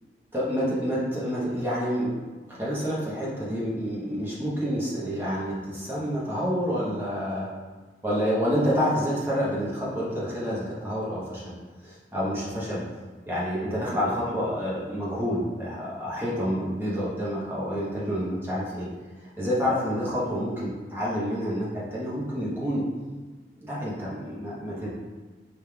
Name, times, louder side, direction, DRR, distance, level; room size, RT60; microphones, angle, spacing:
voice 1, 0.3-2.2 2.5-7.5 8.0-11.5 11.8-12.8 13.3-18.9 19.4-22.9 23.6-24.9, equal, 15° right, -7 dB, 1.0 m, -28 dB
5.0 x 3.5 x 2.4 m, 1.3 s
head